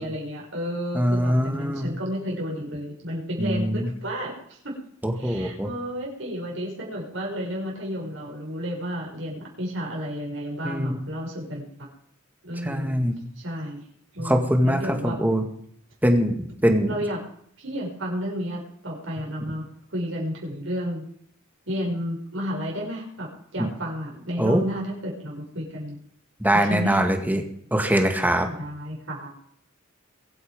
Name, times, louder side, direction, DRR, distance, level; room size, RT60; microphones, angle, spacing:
voice 1, 0.0-4.7 5.2-11.9 12.4-13.0 13.4-13.8 14.1-15.2 16.8-17.2 17.6-19.6 19.9-21.0 21.7-26.0 26.6-27.0 28.5-29.3, equal, 70° right, -2 dB, 6.3 m, -32 dB
voice 2, 0.9-2.0 3.4-3.9 5.0-5.7 10.6-11.0 12.6-13.2 14.2-15.4 16.0-16.4 16.6-16.9 23.6-23.7 24.4-24.6 26.4-27.4 27.7-28.5, equal, 10° right, 5 dB, 2.0 m, -22 dB
23.0 x 8.6 x 5.3 m, 0.66 s
head